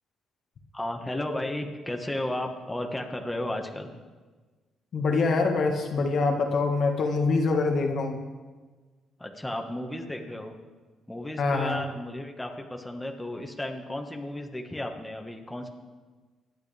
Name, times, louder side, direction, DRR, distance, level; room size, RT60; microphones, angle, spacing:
voice 1, 0.7-3.9 9.2-10.5 11.1-15.7, left 1 dB, 10° left, 3 dB, 1.5 m, -34 dB
voice 2, 4.9-8.2 11.4-11.8, left 3 dB, 60° left, 3 dB, 1.7 m, -25 dB
24.5 x 10.0 x 3.5 m, 1.4 s
cardioid pair, 90°, 0 cm